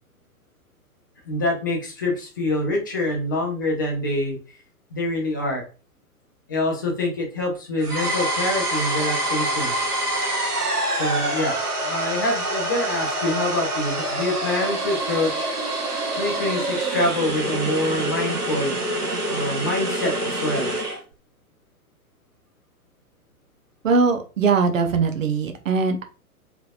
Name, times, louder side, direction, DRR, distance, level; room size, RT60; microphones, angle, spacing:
voice 1, 1.3-4.4 4.9-5.6 6.5-9.7 11.0-15.5 16.1-18.7 19.3-20.7, left 1 dB, 15° left, 0 dB, 0.4 m, -26 dB
sound 1, 7.8-21.0, right 1 dB, 85° right, 1.1 m, -26 dB
voice 2, 23.8-26.0, right 4 dB, 55° right, 6 dB, 0.8 m, -21 dB
3.8 x 3.3 x 2.4 m, 0.35 s
figure-of-eight pair, 110°, 45 cm